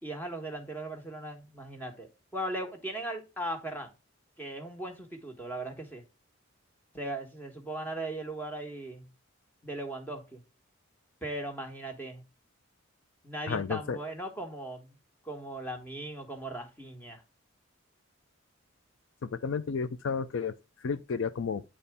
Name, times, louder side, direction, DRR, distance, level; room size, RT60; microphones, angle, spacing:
voice 1, 0.0-3.9 4.4-6.0 6.9-9.1 9.6-10.4 11.2-12.2 13.2-14.9 15.2-17.2, right 1 dB, 10° left, 1.4 m, -38 dB
voice 2, 13.5-14.0 19.2-20.6 20.8-21.6, left 5 dB, 70° left, 0.4 m, -32 dB
8.9 x 4.2 x 3.4 m
head